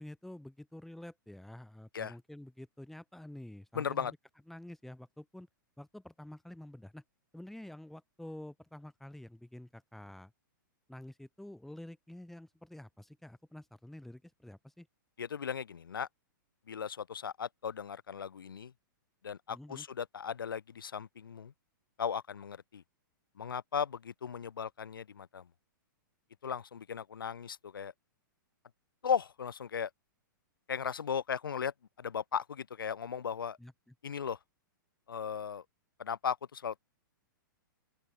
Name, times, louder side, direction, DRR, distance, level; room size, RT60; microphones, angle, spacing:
voice 1, 0.0-4.2 4.5-5.5 5.8-7.0 7.3-10.3 10.9-14.9 19.5-19.8 33.6-33.9, left 1 dB, ahead, 2.9 m, -49 dB
voice 2, 3.7-4.1 15.2-16.1 16.7-18.7 19.2-21.5 22.0-22.8 23.4-25.5 26.4-27.9 29.0-29.9 30.7-33.6 34.0-34.4 35.1-35.6 36.0-36.8, left 7 dB, 90° left, 2.0 m, -36 dB
open air
hypercardioid pair, 130°, 11 cm